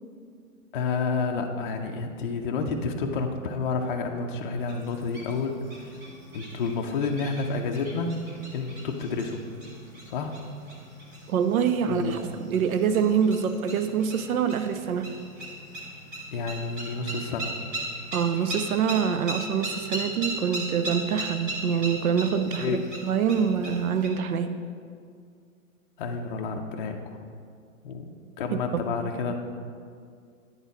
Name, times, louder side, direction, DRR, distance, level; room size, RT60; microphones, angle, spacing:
voice 1, 0.7-6.0 6.3-8.2 8.5-9.4 10.1-10.4 11.9-12.3 16.3-17.5 22.6-22.8 26.0-27.0 27.8-28.1 28.4-29.3, left 4 dB, 40° left, 3 dB, 0.4 m, -30 dB
sound 1, 4.6-24.1, right 1 dB, 15° right, 0.4 m, -38 dB
voice 2, 11.3-15.1 18.1-24.6 28.5-28.6, right 7 dB, 85° right, 10 dB, 0.6 m, -25 dB
9.3 x 4.0 x 4.0 m, 2.2 s
hypercardioid pair, 150°, 42 cm